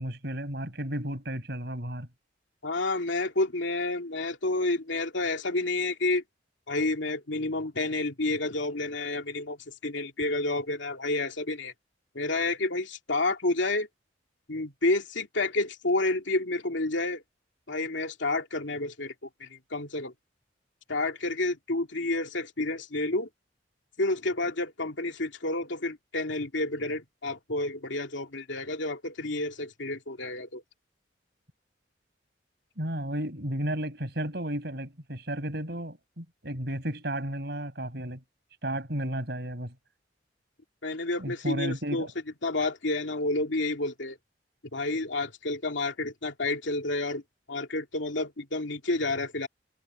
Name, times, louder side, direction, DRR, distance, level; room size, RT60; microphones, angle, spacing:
voice 1, 0.0-2.1 32.8-38.2 38.6-39.7 41.2-42.1, right 1 dB, 60° right, 7.1 m, -33 dB
voice 2, 2.6-6.2 6.7-9.6 9.8-11.7 12.1-13.9 14.5-17.2 17.7-19.1 19.4-20.1 20.9-23.3 24.0-30.6 40.8-42.1 42.4-44.2 44.7-47.2 47.5-49.5, left 2 dB, 80° left, 2.5 m, -30 dB
head